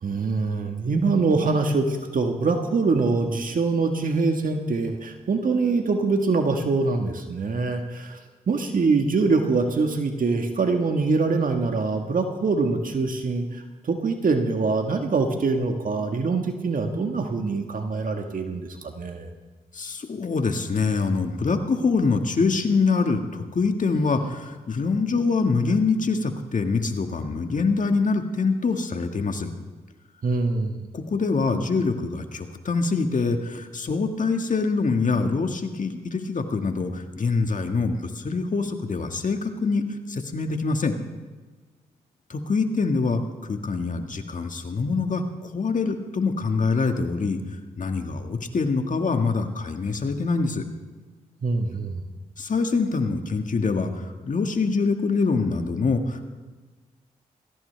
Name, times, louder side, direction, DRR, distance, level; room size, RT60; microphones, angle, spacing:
voice 1, 0.0-8.2 8.5-19.3 30.2-30.9 51.4-52.0, right 3 dB, 60° right, 5 dB, 1.6 m, -24 dB
voice 2, 19.7-29.5 30.9-41.0 42.3-47.4 47.8-50.6 52.4-56.2, left 4 dB, 55° left, 5 dB, 1.8 m, -25 dB
20.0 x 16.0 x 3.4 m, 1.3 s
supercardioid pair, 45°, 16 cm